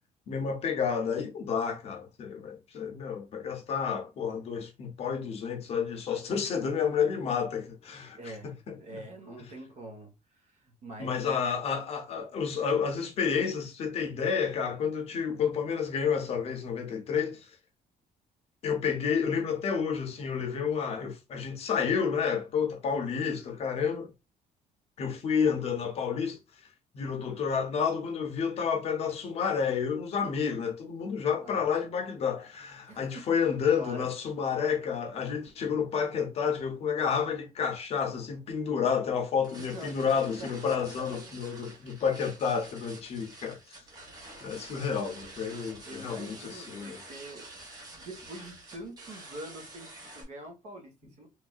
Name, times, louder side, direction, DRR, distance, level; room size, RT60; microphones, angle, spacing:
voice 1, 0.3-9.0 11.0-17.5 18.6-24.1 25.0-26.4 26.9-43.8 44.4-47.0, left 6 dB, 45° left, 0.6 m, -30 dB
voice 2, 8.2-10.1 10.4-11.4 30.2-30.6 31.4-31.6 32.9-33.3 33.8-34.1 39.7-41.3 41.7-41.9 45.6-47.5 48.0-51.3, right 1 dB, 50° right, 1.0 m, -45 dB
sound 1, 39.4-50.2, right 2 dB, 25° right, 1.0 m, -48 dB
3.2 x 2.5 x 2.3 m
cardioid pair, 180°, 14 cm